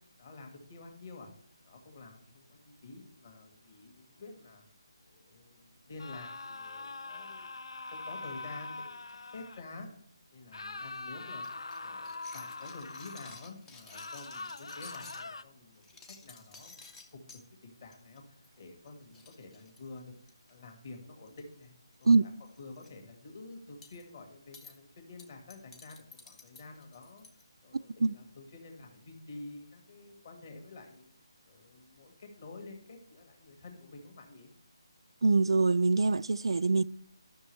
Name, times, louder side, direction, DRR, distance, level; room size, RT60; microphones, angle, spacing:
voice 1, 0.2-1.3 1.7-4.6 5.0-7.5 7.9-9.9 10.3-11.5 11.8-17.0 17.3-20.2 20.5-21.7 22.0-22.3 22.6-27.2 27.6-31.1 31.5-34.5, left 3 dB, 35° left, 2.0 m, -49 dB
sound 1, 6.0-9.6 10.5-13.4 13.9-15.4, left 3 dB, 90° left, 0.7 m, -43 dB
sound 2, 11.4-15.2 15.7-17.4 17.9-18.2 18.4-18.6 18.9-19.0 19.1-20.5 21.3-21.6 21.9-22.1 22.5-22.9 23.8-24.0 24.5-24.7 25.2-27.4, left 4 dB, 5° left, 0.5 m, -53 dB
voice 2, 35.2-36.8, right 3 dB, 75° right, 0.4 m, -24 dB
12.5 x 6.2 x 3.3 m
hypercardioid pair, 175°, 3 cm